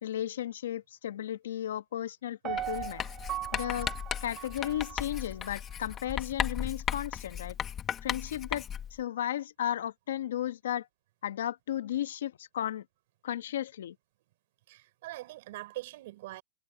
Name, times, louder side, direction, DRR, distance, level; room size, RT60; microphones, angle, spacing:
voice 1, 0.0-3.0 3.5-3.9 4.2-7.6 8.0-8.6 8.9-10.9 11.2-12.8 13.2-14.0, left 11 dB, 85° left, 1.5 m, -34 dB
Piano, 2.4-5.5 6.0-6.1, right 12 dB, 35° right, 1.1 m, -39 dB
Writing, 2.6-9.0, left 9 dB, 25° left, 1.5 m, -36 dB
voice 2, 14.7-16.4, right 17 dB, 65° right, 4.5 m, -42 dB
hypercardioid pair, 130°, 0 cm